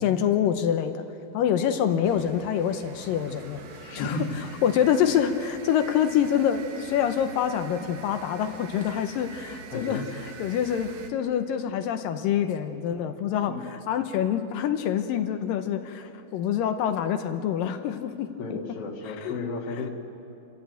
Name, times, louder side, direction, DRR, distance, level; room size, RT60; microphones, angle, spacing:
voice 1, 0.0-1.0 1.3-3.6 3.9-4.2 4.6-18.6 19.1-19.3, left 9 dB, 75° left, 8 dB, 2.3 m, -26 dB
sound 1, 2.0-11.1, right 5 dB, 60° right, 1.7 m, -45 dB
voice 2, 3.8-4.4 9.7-10.1 13.5-13.6 18.4-19.9, left 3 dB, 45° left, -3 dB, 2.3 m, -33 dB
29.5 x 13.0 x 9.1 m, 2.8 s
omnidirectional pair, 4.4 m